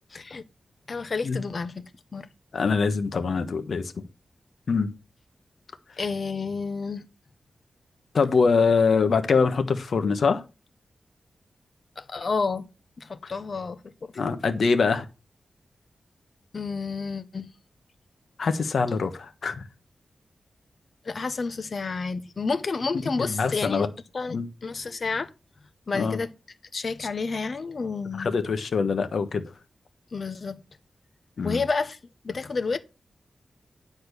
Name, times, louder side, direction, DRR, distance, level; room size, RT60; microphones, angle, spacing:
voice 1, 0.1-0.4 0.9-1.8 2.1-2.3 6.0-7.0 12.0-12.6 13.0-14.1 16.5-17.5 21.0-23.8 24.1-25.3 25.9-26.3 26.7-28.3 30.1-30.6 31.4-32.0 32.2-32.8, left 4 dB, 50° left, 0.9 m, -30 dB
voice 2, 2.5-3.9 4.7-4.9 8.1-10.4 14.2-15.1 18.4-19.6 23.2-23.9 24.3-24.5 25.9-26.2 27.0-27.1 28.2-29.5 31.4-31.6, left 5 dB, 70° left, 1.2 m, -23 dB
9.9 x 4.3 x 6.8 m
wide cardioid pair, 110°, 0 cm